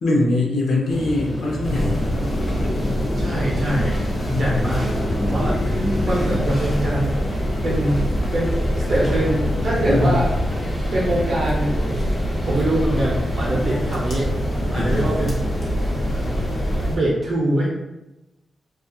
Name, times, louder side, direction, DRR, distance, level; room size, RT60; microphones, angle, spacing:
voice 1, 0.0-2.2 4.2-5.3 9.9-10.2 14.7-15.2, left 2 dB, 75° left, -1 dB, 0.6 m, -23 dB
sound 1, 0.9-16.9, equal, 20° left, 0.5 m, -28 dB
sound 2, 1.6-17.0, equal, 45° left, 0.8 m, -25 dB
voice 2, 3.1-4.0 4.3-4.9 5.2-7.2 7.6-8.0 8.3-10.3 10.9-12.1 12.4-15.5 16.9-17.7, right 1 dB, 60° right, -5 dB, 0.6 m, -24 dB
2.7 x 2.3 x 2.3 m, 0.99 s
wide cardioid pair, 110°, 0 cm